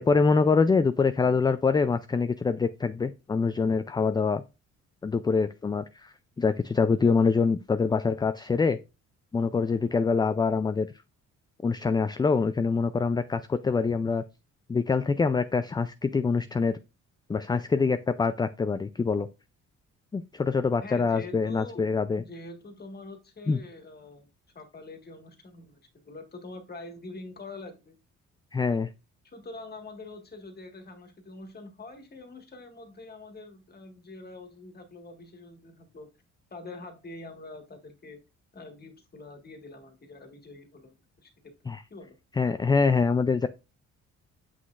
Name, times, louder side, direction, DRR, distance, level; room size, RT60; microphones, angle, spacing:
voice 1, 0.0-4.4 5.0-8.8 9.3-10.9 11.6-14.2 14.7-16.8 17.3-19.3 20.1-22.2 23.5-23.6 28.5-28.9 41.7-41.8 42.4-43.5, left 4 dB, 15° left, 0.3 m, -25 dB
voice 2, 20.8-21.8 22.1-24.3 24.5-28.0 29.2-36.1 36.5-38.2 38.5-41.5 41.9-42.2, left 2 dB, 30° left, 1.6 m, -45 dB
7.5 x 6.2 x 2.4 m
cardioid pair, 90°, 30 cm